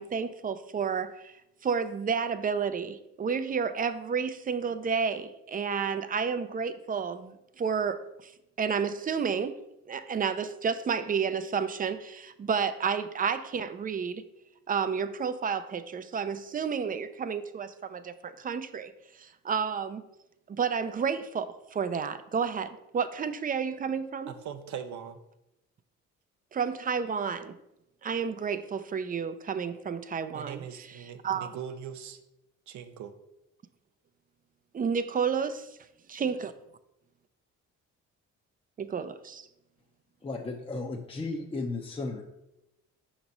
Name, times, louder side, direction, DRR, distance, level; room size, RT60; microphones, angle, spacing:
voice 1, 0.0-1.4 1.6-8.3 8.6-14.2 14.7-20.0 20.5-24.3 26.5-27.6 28.0-31.5 34.7-35.8 36.1-36.5 38.8-39.5, right 6 dB, 30° right, 12 dB, 0.4 m, -31 dB
voice 2, 24.3-25.2 30.3-32.2 32.7-33.1, right 8 dB, 70° right, 9 dB, 0.7 m, -40 dB
voice 3, 40.2-42.2, left 3 dB, 20° left, 1 dB, 0.6 m, -34 dB
5.9 x 3.0 x 5.3 m, 0.89 s
cardioid pair, 90°, 30 cm